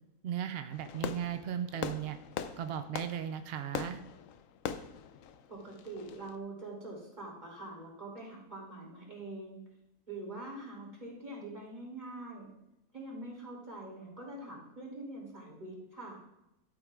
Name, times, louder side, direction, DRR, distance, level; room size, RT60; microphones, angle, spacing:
voice 1, 0.2-2.2 2.6-4.0, right 9 dB, 80° right, 9 dB, 0.5 m, -36 dB
Fireworks, 0.7-6.3, left 8 dB, 70° left, 0.9 m, -41 dB
voice 2, 5.5-9.6 10.1-12.5 12.9-16.2, right 2 dB, 30° right, -3 dB, 2.9 m, -44 dB
12.0 x 8.7 x 2.4 m, 0.88 s
omnidirectional pair, 1.6 m